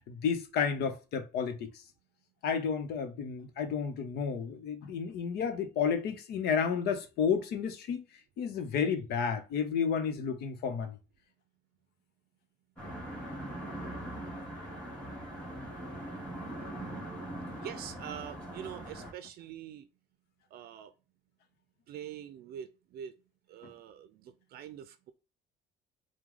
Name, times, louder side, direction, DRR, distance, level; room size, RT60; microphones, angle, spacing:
voice 1, 0.1-1.7 2.4-8.0 8.4-11.0 23.6-23.7, left 6 dB, 75° left, 0.9 m, -31 dB
sound 1, 12.8-19.1, right 1 dB, 5° left, 2.2 m, -41 dB
voice 2, 17.6-19.9 20.5-20.9 21.9-23.2 23.5-25.1, right 9 dB, 65° right, 0.5 m, -44 dB
4.6 x 2.2 x 3.6 m
cardioid pair, 110°, 17 cm